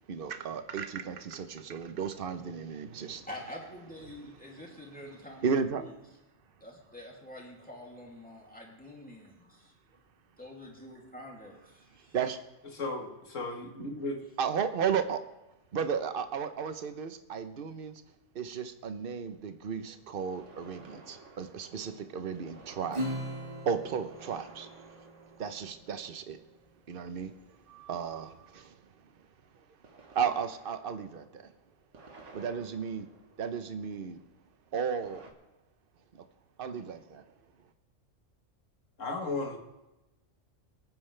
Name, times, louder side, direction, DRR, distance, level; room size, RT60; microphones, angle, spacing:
voice 1, 0.1-3.3 5.4-5.9 12.1-12.4 13.8-13.9 14.4-15.2 15.7-18.0 18.3-23.3 23.6-24.9 25.4-26.4 26.9-27.3 27.7-28.8 30.1-31.5 32.3-33.1 33.4-34.2 34.7-35.2 36.1-36.2 36.6-37.2, right 6 dB, 50° right, 9 dB, 1.0 m, -34 dB
voice 2, 3.3-5.9 6.6-9.7 10.4-12.2, left 1 dB, 5° left, -2 dB, 2.6 m, -46 dB
voice 3, 12.7-14.2 39.0-39.6, left 2 dB, 75° left, 3 dB, 1.9 m, -35 dB
sound 1, 16.3-16.4 20.2-26.7 29.8-34.1 35.0-35.3, right 3 dB, 70° right, 1.8 m, -55 dB
Acoustic guitar / Strum, 22.9-25.8, equal, 30° right, 1.6 m, -39 dB
24.5 x 9.5 x 3.4 m, 1.0 s
omnidirectional pair, 1.3 m